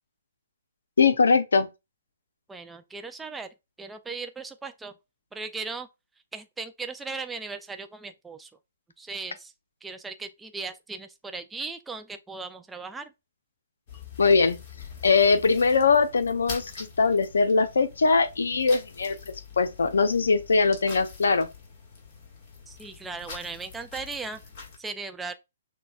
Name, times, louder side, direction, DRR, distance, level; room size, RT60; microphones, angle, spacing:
voice 1, 1.0-1.7 14.2-14.6 15.0-16.7 17.0-19.1 19.6-21.5, left 4 dB, 70° left, 0.6 m, -21 dB
voice 2, 2.5-3.5 3.8-4.9 5.3-5.9 6.3-8.5 9.0-9.5 9.8-13.1 22.7-24.4 24.8-25.3, right 4 dB, 10° right, 0.3 m, -37 dB
sound 1, 13.9-24.8, left 5 dB, 40° left, 1.6 m, -44 dB
6.0 x 2.2 x 2.3 m
figure-of-eight pair, 130°, 0 cm